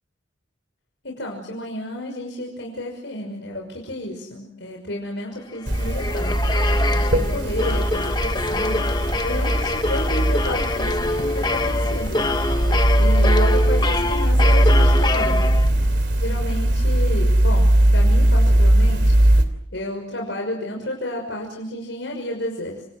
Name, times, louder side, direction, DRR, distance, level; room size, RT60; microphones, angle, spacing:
voice 1, 1.0-6.4 6.9-8.8 9.2-12.2 13.0-15.4 16.2-19.2 19.7-22.8, left 1 dB, 75° left, 1 dB, 6.0 m, -31 dB
sound 1, 5.5-16.0, left 2 dB, 20° left, 1.1 m, -25 dB
sound 2, 5.7-19.4, right 1 dB, 60° right, 3.2 m, -19 dB
29.5 x 27.5 x 6.3 m, 0.74 s
head